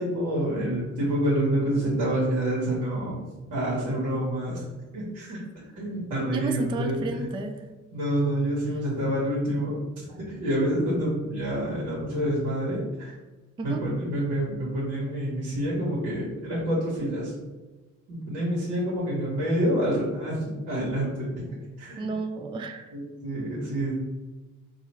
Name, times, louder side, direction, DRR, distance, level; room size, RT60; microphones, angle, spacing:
voice 1, 0.0-3.2 3.5-4.6 4.9-7.3 7.9-13.1 13.6-17.3 18.1-21.5 21.8-22.1 22.9-24.0, right 1 dB, 70° right, -6 dB, 1.3 m, -27 dB
voice 2, 6.3-7.6 13.6-13.9 22.0-23.0, right 3 dB, 15° right, 6 dB, 0.3 m, -32 dB
4.1 x 2.4 x 3.0 m, 1.2 s
supercardioid pair, 60°, 33 cm